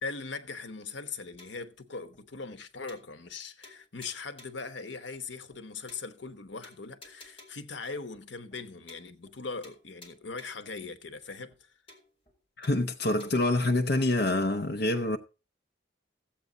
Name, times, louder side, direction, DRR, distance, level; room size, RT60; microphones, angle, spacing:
voice 1, 0.0-11.7, left 4 dB, 90° left, 1.1 m, -40 dB
sound 1, 1.4-1.7 2.1-2.2 2.5-2.6 2.9-3.4 3.6-4.7 5.1-5.2 5.5-5.6 5.9-6.4 6.6-7.7 8.1-8.2 8.5-8.6 8.9-9.4 9.6-10.7 11.1-11.2 11.5-11.6 11.9-12.4 12.6-13.3, left 2 dB, 30° left, 2.4 m, -54 dB
voice 2, 12.6-15.2, left 2 dB, 60° left, 0.7 m, -26 dB
15.0 x 8.3 x 3.9 m
head